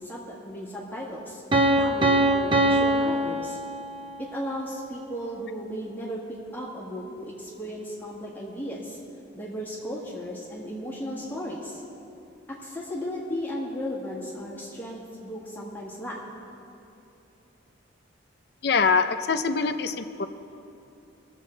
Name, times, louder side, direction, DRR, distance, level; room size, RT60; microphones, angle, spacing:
voice 1, 0.0-1.4 1.7-3.6 4.2-9.0 9.3-11.8 12.5-16.2, equal, 10° left, -6 dB, 1.7 m, -35 dB
Piano, 1.5-4.3, right 1 dB, 25° right, 0.7 m, -23 dB
voice 2, 18.6-20.3, left 5 dB, 55° left, 9 dB, 0.5 m, -24 dB
21.0 x 7.5 x 4.5 m, 2.8 s
head